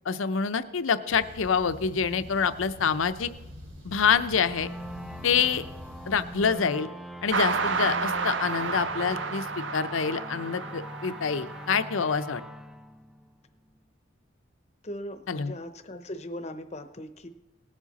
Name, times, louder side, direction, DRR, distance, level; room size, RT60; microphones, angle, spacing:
voice 1, 0.1-3.3 3.8-4.7 5.2-5.7 6.1-6.9 7.2-12.4 15.3-15.5, left 6 dB, 75° left, 12 dB, 0.6 m, -26 dB
sound 1, 1.1-6.5, left 1 dB, 85° right, 3.4 m, -45 dB
sound 2, 4.4-13.7, equal, ahead, 0.3 m, -42 dB
sound 3, 7.3-12.1, right 5 dB, 60° right, 0.6 m, -31 dB
voice 2, 14.8-17.3, left 1 dB, 35° left, 9 dB, 0.7 m, -39 dB
18.5 x 7.4 x 4.1 m, 1.0 s
head